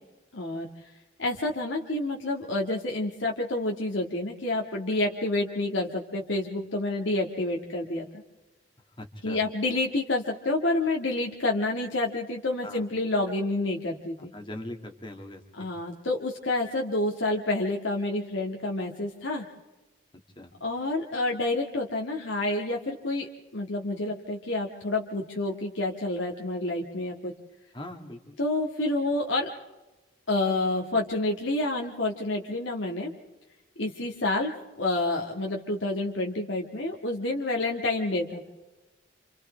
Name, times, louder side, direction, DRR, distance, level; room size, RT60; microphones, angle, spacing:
voice 1, 0.3-0.7 1.2-8.2 9.2-14.3 15.6-19.4 20.6-27.3 28.4-29.5 30.3-33.1 33.8-34.5 34.8-38.5, left 2 dB, 75° left, 0 dB, 1.8 m, -28 dB
voice 2, 9.0-9.4 12.6-12.8 14.3-15.7 20.4-20.5 27.7-28.4, left 1 dB, 25° left, 4 dB, 2.0 m, -41 dB
28.5 x 27.5 x 3.3 m, 1.1 s
head